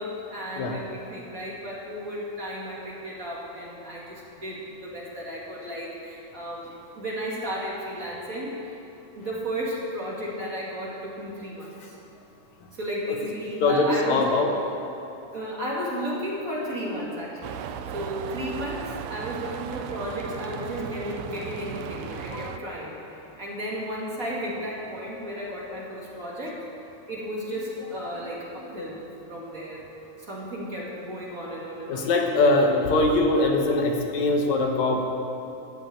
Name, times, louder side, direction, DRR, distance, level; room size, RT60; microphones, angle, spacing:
voice 1, 0.0-6.7 7.0-8.8 9.1-11.9 12.7-14.2 15.3-17.6 17.9-26.6 27.1-29.0 29.3-29.9 30.2-32.6, equal, 30° right, -5 dB, 2.2 m, -34 dB
voice 2, 13.6-14.5 16.8-17.0 21.8-21.9 22.3-22.6 28.6-28.9 31.9-35.0, left 2 dB, 70° left, 3 dB, 2.3 m, -23 dB
sound 1, 17.4-22.6, right 9 dB, 80° right, 1.6 m, -36 dB
14.5 x 6.5 x 8.7 m, 2.9 s
omnidirectional pair, 3.5 m